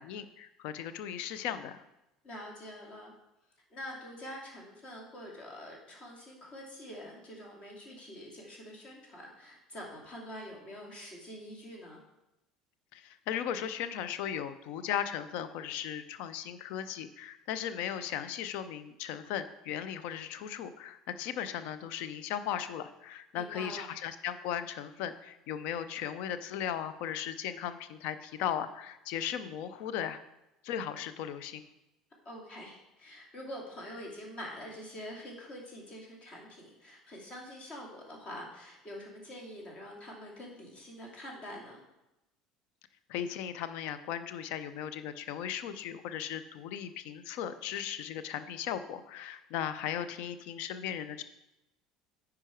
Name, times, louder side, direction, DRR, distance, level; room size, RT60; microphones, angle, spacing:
voice 1, 0.0-1.8 12.9-30.2 30.6-31.6 43.1-51.2, left 9 dB, 55° left, 12 dB, 0.5 m, -37 dB
voice 2, 2.2-3.1 3.7-12.0 23.3-23.9 32.2-41.8, equal, 40° left, -1 dB, 2.6 m, -45 dB
9.9 x 4.8 x 4.6 m, 0.94 s
figure-of-eight pair, 65°, 3 cm